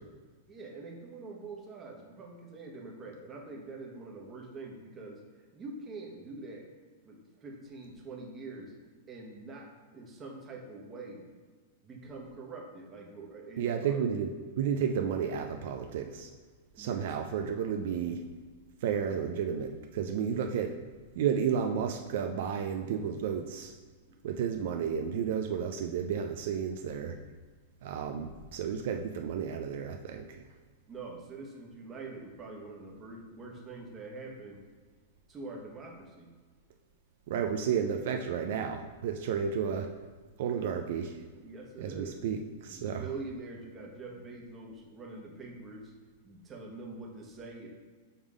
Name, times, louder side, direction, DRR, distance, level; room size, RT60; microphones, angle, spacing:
voice 1, 0.5-6.6 7.0-8.7 9.1-9.7 9.9-11.3 11.8-14.1 16.8-17.1 30.9-34.6 35.3-36.3 41.3-42.2 42.7-45.9 46.2-47.7, right 3 dB, 20° right, -1 dB, 1.1 m, -44 dB
voice 2, 13.6-14.3 14.6-16.3 16.8-18.2 18.8-20.8 21.1-23.7 24.2-27.2 27.8-30.4 37.3-39.9 40.4-41.2 41.8-43.0, right 7 dB, 60° right, 4 dB, 0.4 m, -32 dB
5.5 x 3.6 x 4.8 m, 1.4 s
supercardioid pair, 150°, 0 cm